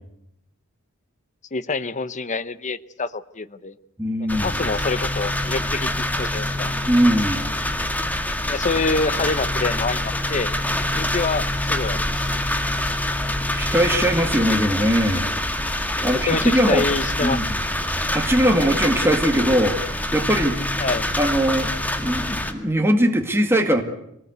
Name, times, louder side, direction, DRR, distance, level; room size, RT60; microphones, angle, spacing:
voice 1, 1.5-3.8 4.4-6.7 8.5-10.5 10.9-12.3 16.0-17.4 20.8-21.1, left 3 dB, 35° left, 13 dB, 0.9 m, -26 dB
voice 2, 4.0-4.6 6.9-7.5 13.5-15.3 16.0-16.9 17.2-17.5 18.1-20.7 21.2-23.8, equal, 10° right, 4 dB, 2.1 m, -20 dB
sound 1, 4.3-22.5, left 1 dB, 10° left, 2.0 m, -25 dB
25.0 x 19.0 x 8.1 m, 0.81 s
head